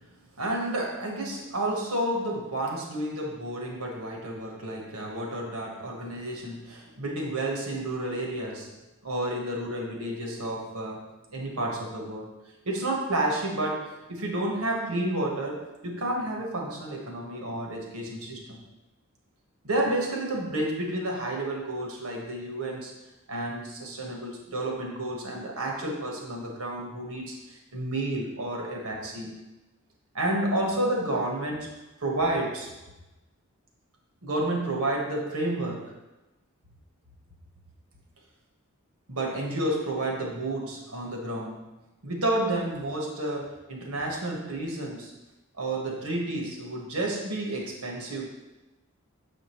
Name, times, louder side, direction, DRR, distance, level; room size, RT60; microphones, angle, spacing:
voice 1, 0.4-8.7 9.0-12.3 12.6-18.6 19.6-22.9 23.3-29.3 30.1-31.7 32.0-32.7 34.2-35.9 39.1-41.6 42.0-45.1 45.5-48.3, right 1 dB, 85° right, 0 dB, 1.3 m, -30 dB
7.0 x 5.0 x 3.0 m, 1.1 s
head